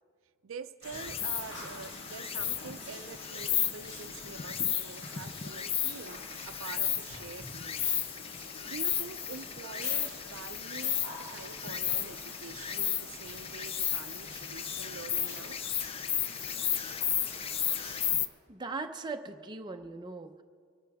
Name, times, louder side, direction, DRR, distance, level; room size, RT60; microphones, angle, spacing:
voice 1, 0.4-8.0 8.4-15.6, right 5 dB, 75° right, 11 dB, 0.5 m, -46 dB
sound 1, 0.8-18.1, left 1 dB, 60° left, 2.5 m, -47 dB
Insect, 0.9-18.3, left 9 dB, 30° left, 0.4 m, -34 dB
voice 2, 18.5-20.4, right 3 dB, 20° right, 5 dB, 0.6 m, -39 dB
23.5 x 12.0 x 3.5 m, 2.1 s
head